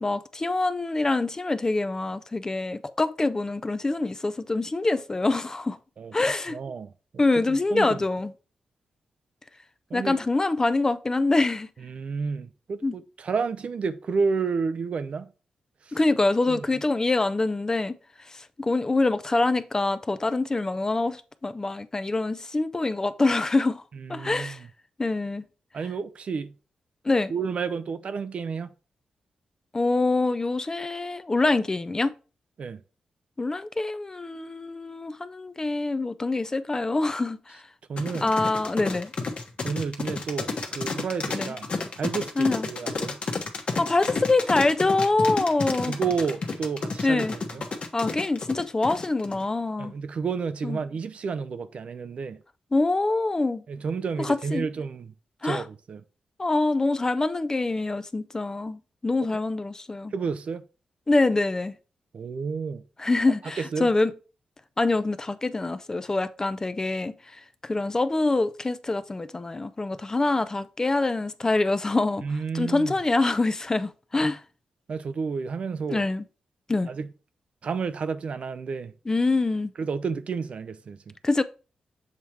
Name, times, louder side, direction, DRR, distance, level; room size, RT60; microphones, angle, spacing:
voice 1, 0.0-5.8 6.1-6.6 7.2-8.3 9.9-11.7 12.8-13.0 15.9-18.0 18.3-23.8 24.1-24.6 25.0-25.4 27.0-27.3 29.7-32.1 33.4-37.6 38.2-39.1 41.3-41.5 42.4-42.7 43.8-46.0 47.0-47.4 47.9-49.9 50.6-50.8 52.7-53.6 54.2-54.7 55.4-55.6 56.4-60.1 61.1-61.8 63.0-64.1 64.8-67.1 67.6-72.2 72.5-74.4 75.9-76.2 76.7-76.9 79.1-79.7 81.2-81.4, left 2 dB, 25° left, 0.5 m, -25 dB
voice 2, 6.5-6.9 7.5-8.0 9.9-10.2 11.8-15.3 15.9-16.0 16.5-16.7 23.9-24.6 25.7-26.5 27.3-28.7 32.6-32.8 37.9-38.3 39.6-41.7 42.0-43.2 45.8-47.6 49.8-52.4 53.7-55.1 55.4-56.0 60.1-60.6 62.1-62.8 63.6-63.9 72.2-72.9 74.9-76.1 76.9-77.1 77.6-78.9 79.8-81.1, right 5 dB, 60° right, 0.6 m, -31 dB
sound 1, 38.0-49.4, left 4 dB, 55° left, 1.2 m, -31 dB
7.3 x 3.0 x 4.8 m
cardioid pair, 70°, 2 cm